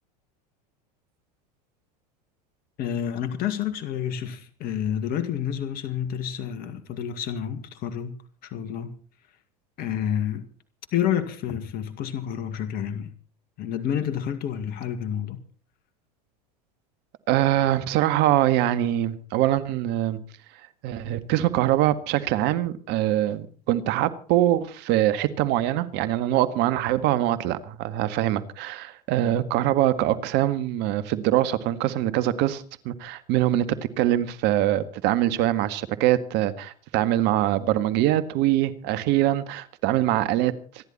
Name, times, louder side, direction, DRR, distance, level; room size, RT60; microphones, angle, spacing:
voice 1, 2.8-8.9 9.8-10.5 10.9-13.1 13.6-15.4, left 9 dB, 45° left, 2.0 m, -29 dB
voice 2, 17.3-20.2 20.8-33.7 34.0-40.5, right 13 dB, 55° right, 1.8 m, -23 dB
27.0 x 11.0 x 4.3 m
hypercardioid pair, 95°, 21 cm